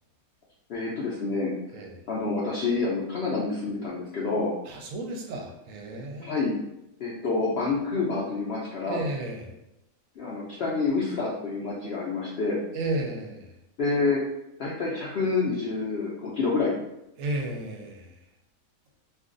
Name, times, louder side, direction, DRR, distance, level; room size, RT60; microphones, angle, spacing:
voice 1, 0.7-1.5 2.1-4.5 6.2-6.5 7.0-9.0 10.2-12.6 13.8-14.2 14.6-16.8, left 4 dB, 65° left, -5 dB, 0.6 m, -28 dB
voice 2, 4.6-6.3 8.8-9.5 12.7-13.6 17.2-18.3, right 2 dB, 70° right, 2 dB, 0.9 m, -33 dB
2.5 x 2.3 x 3.7 m, 0.87 s
omnidirectional pair, 1.6 m